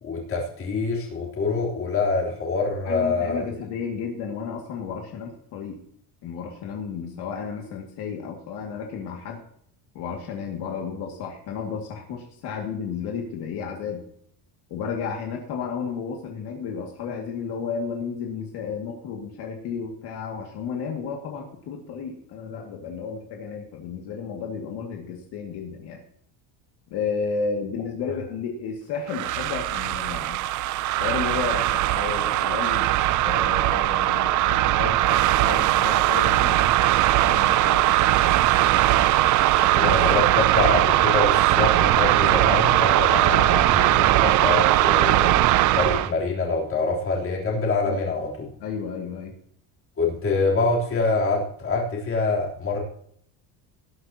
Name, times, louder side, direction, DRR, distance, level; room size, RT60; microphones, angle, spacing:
voice 1, 0.0-3.5 39.7-48.5 50.0-52.8, left 3 dB, 30° left, -2 dB, 3.5 m, -25 dB
voice 2, 2.9-5.8 6.2-9.4 9.9-14.0 14.7-26.0 26.9-30.4 31.0-32.9 33.2-38.0 39.6-40.0 47.8-48.0 48.6-49.3, left 6 dB, 55° left, 1 dB, 2.3 m, -32 dB
sound 1, 29.1-46.1, right 15 dB, 40° right, 0.4 m, -20 dB
19.0 x 10.5 x 2.9 m, 0.65 s
cardioid pair, 180°, 47 cm